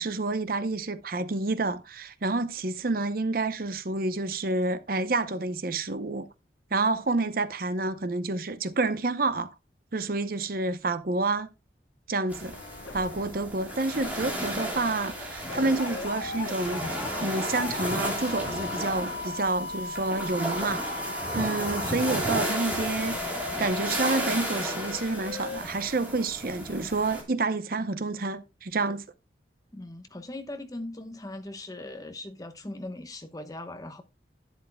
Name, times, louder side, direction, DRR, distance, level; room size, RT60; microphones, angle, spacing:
voice 1, 0.0-6.3 6.7-9.5 9.9-11.5 12.1-12.5 12.9-16.8 17.2-20.8 21.3-23.2 23.6-29.0, right 3 dB, 50° right, 0.7 m, -29 dB
sound 1, 12.3-27.2, right 1 dB, 10° right, 3.1 m, -34 dB
sound 2, 12.5-13.3 13.7-25.6, left 4 dB, 75° left, 1.0 m, -38 dB
voice 2, 29.7-34.0, left 1 dB, 20° left, 1.0 m, -39 dB
11.0 x 10.0 x 2.2 m
head